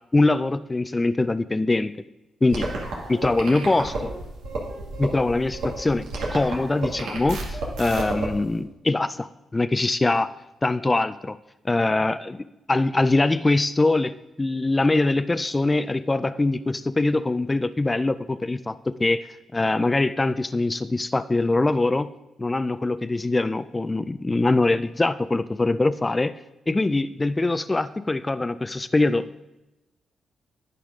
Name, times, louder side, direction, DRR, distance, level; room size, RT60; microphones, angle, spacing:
voice 1, 0.1-1.9 2.4-2.7 3.1-4.1 5.0-10.3 10.6-11.4 11.6-19.3 19.5-22.1 22.4-26.3 26.7-29.3, left 2 dB, 25° left, 13 dB, 0.4 m, -23 dB
sound 1, 2.5-8.3, right 2 dB, 90° right, 2.1 m, -31 dB
10.0 x 5.8 x 5.1 m, 0.97 s
supercardioid pair, 60°, 0 cm